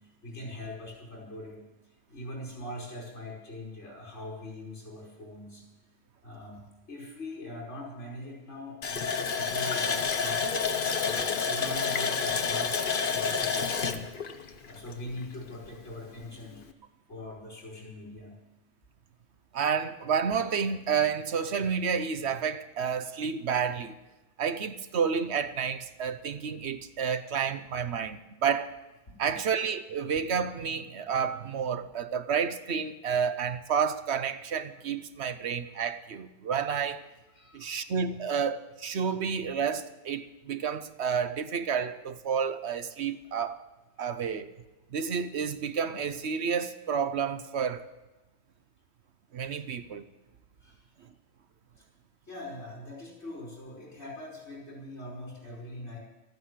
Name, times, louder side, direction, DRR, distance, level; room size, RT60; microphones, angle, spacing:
voice 1, 0.2-1.6 2.1-5.6 6.2-6.6 6.9-14.2 14.5-16.7 17.1-18.3 27.3-27.4 29.1-29.3 37.4-37.7 49.5-49.6 50.6-50.8 51.8-51.9 52.3-56.0, left 1 dB, 70° left, 5.4 m, -42 dB
Water tap faucet, 8.8-15.3 15.6-15.7 16.2-16.4, left 5 dB, 50° left, 1.0 m, -29 dB
voice 2, 19.5-24.0 24.4-28.7 29.2-37.0 37.5-43.6 44.0-44.5 44.9-47.8 49.3-50.0, right 7 dB, 65° right, 1.0 m, -30 dB
14.0 x 9.3 x 8.2 m
omnidirectional pair, 1.2 m